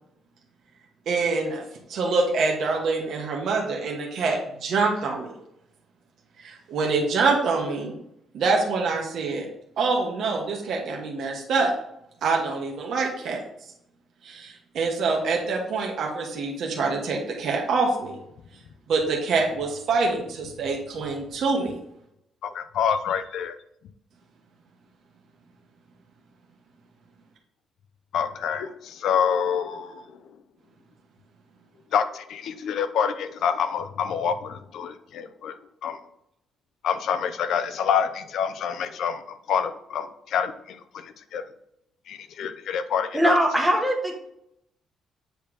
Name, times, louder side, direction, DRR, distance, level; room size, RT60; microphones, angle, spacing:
voice 1, 1.1-1.6 1.9-5.3 6.4-8.0 8.3-9.5 9.8-11.7 12.2-13.4 14.2-18.2 18.9-21.8, right 4 dB, 55° right, -1 dB, 1.3 m, -25 dB
voice 2, 22.4-23.5 28.1-30.0 31.9-35.5 35.8-36.0 36.8-39.2 39.5-41.4 42.1-43.3, left 7 dB, 65° left, 11 dB, 0.5 m, -27 dB
voice 3, 43.1-44.1, equal, 5° right, 0 dB, 1.2 m, -21 dB
7.9 x 3.4 x 4.9 m, 0.78 s
cardioid pair, 165°, 0 cm